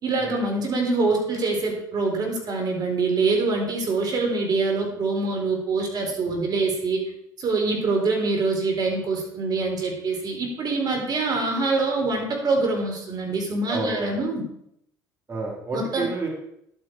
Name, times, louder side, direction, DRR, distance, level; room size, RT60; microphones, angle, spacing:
voice 1, 0.0-7.0 7.4-14.4 15.7-16.1, right 3 dB, 45° right, 1 dB, 4.3 m, -25 dB
voice 2, 13.7-14.2 15.3-16.3, right 3 dB, 30° right, -1 dB, 4.2 m, -30 dB
11.0 x 9.1 x 4.8 m, 0.75 s
hypercardioid pair, 65°, 9 cm